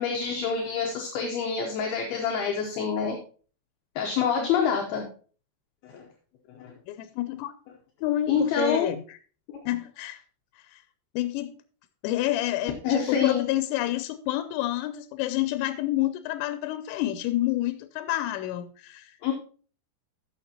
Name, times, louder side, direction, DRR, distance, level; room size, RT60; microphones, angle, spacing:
voice 1, 0.0-3.2 4.0-5.1 5.8-6.0 6.6-6.7 8.3-8.9 9.5-9.6 12.8-13.4 19.2-19.3, left 6 dB, 70° left, 2.7 m, -26 dB
voice 2, 6.9-7.5 8.0-9.2 9.7-10.2 10.7-10.8 11.2-11.5 12.0-19.2, left 14 dB, 90° left, 2.8 m, -29 dB
14.5 x 6.5 x 2.8 m
omnidirectional pair, 5.0 m